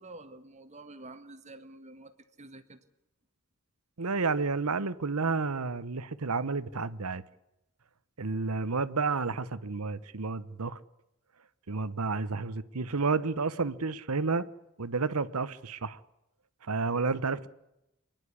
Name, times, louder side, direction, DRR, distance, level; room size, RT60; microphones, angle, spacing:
voice 1, 0.0-2.8, right 2 dB, 30° right, 1.7 m, -48 dB
voice 2, 4.0-7.2 8.2-10.8 11.7-14.5 14.8-16.0 16.6-17.5, right 4 dB, 80° right, 1.0 m, -31 dB
26.5 x 11.0 x 9.8 m
head